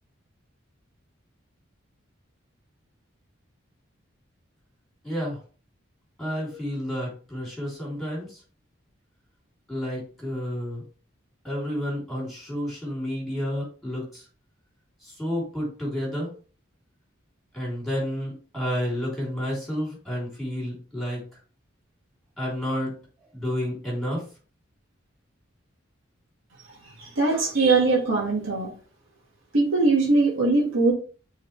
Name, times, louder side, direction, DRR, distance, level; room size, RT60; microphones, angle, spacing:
voice 1, 5.0-5.4 6.2-8.4 9.7-10.8 11.4-14.2 15.0-16.3 17.5-21.2 22.4-22.9 23.3-24.2, equal, ahead, -4 dB, 3.5 m, -30 dB
voice 2, 27.0-28.7 29.5-30.9, right 3 dB, 75° right, -3 dB, 1.9 m, -21 dB
7.2 x 3.9 x 3.3 m, 0.38 s
head